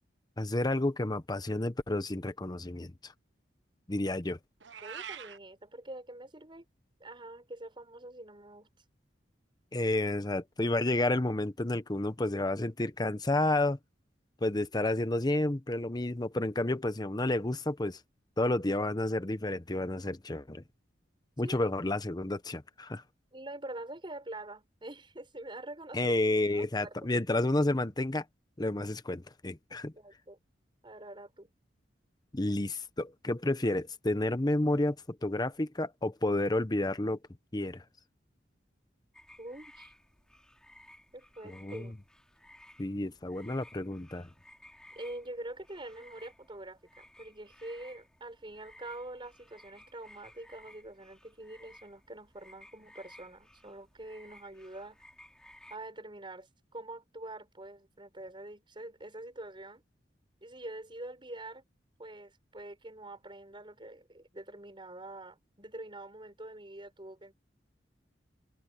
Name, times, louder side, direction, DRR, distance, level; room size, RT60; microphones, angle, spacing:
voice 1, 0.4-3.1 3.9-4.4 9.7-13.8 14.4-18.0 18.4-20.6 21.4-23.0 25.9-28.2 28.6-29.9 32.3-37.2 37.5-37.8 41.4-41.9 42.8-44.3, left 2 dB, 25° left, 0.9 m, -30 dB
Meow, 4.6-5.4, right 8 dB, 90° right, 1.1 m, -43 dB
voice 2, 4.8-6.6 7.0-8.7 21.4-21.6 23.3-26.1 26.5-27.1 30.0-30.4 30.8-31.5 39.4-39.9 41.1-41.9 44.9-55.0 55.7-59.8 60.4-61.7 62.0-67.3, right 1 dB, 30° right, 6.1 m, -45 dB
sound 1, 39.1-55.8, left 1 dB, 5° left, 4.2 m, -57 dB
head